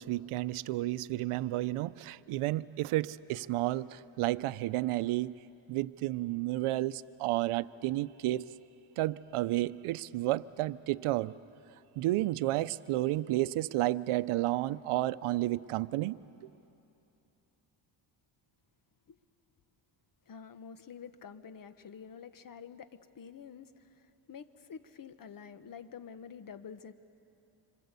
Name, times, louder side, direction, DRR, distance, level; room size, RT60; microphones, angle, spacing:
voice 1, 0.0-5.4 5.7-8.5 9.0-11.3 12.0-16.2, right 16 dB, 85° right, 16 dB, 0.7 m, -31 dB
voice 2, 20.3-26.9, left 7 dB, 40° left, 12 dB, 1.1 m, -48 dB
26.5 x 26.0 x 8.2 m, 2.8 s
cardioid pair, 115°, 50 cm